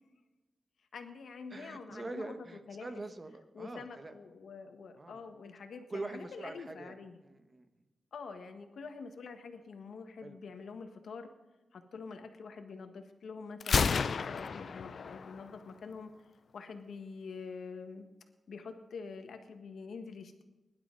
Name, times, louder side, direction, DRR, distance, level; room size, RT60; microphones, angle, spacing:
voice 1, 0.9-2.3 2.7-2.9 3.5-7.2 8.1-11.3 11.7-16.1 16.5-18.1 18.5-20.4, left 5 dB, 85° left, 6 dB, 1.6 m, -46 dB
voice 2, 1.5-4.1 5.0-5.2 5.9-6.9 7.2-7.7 10.2-10.4, right 2 dB, 30° right, 8 dB, 1.2 m, -44 dB
Gunshot gunfire, 13.6-15.6, left 5 dB, 60° left, 0.5 m, -31 dB
21.5 x 11.5 x 4.0 m, 1.1 s
wide cardioid pair, 150°, 0 cm